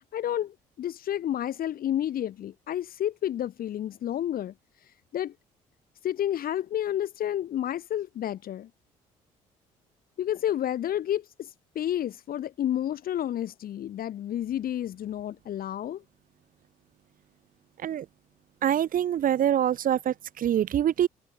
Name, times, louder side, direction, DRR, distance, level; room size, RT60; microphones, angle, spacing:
voice 1, 0.1-4.5 5.1-5.3 6.0-8.7 10.2-16.0, left 11 dB, 55° left, 3.4 m, -30 dB
voice 2, 18.6-21.1, right 10 dB, 55° right, 1.4 m, -25 dB
hypercardioid pair, 50°, 17 cm